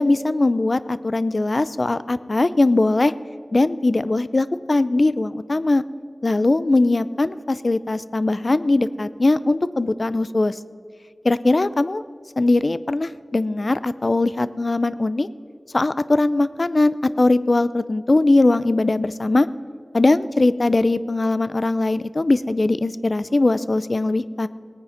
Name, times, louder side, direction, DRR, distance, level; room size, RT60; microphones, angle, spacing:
voice 1, 0.0-3.1 3.5-5.8 6.2-10.6 11.2-12.0 12.4-15.3 15.7-19.5 19.9-24.5, left 2 dB, 50° left, 15 dB, 0.5 m, -20 dB
18.5 x 9.4 x 5.7 m, 2.1 s
wide cardioid pair, 70°, 0 cm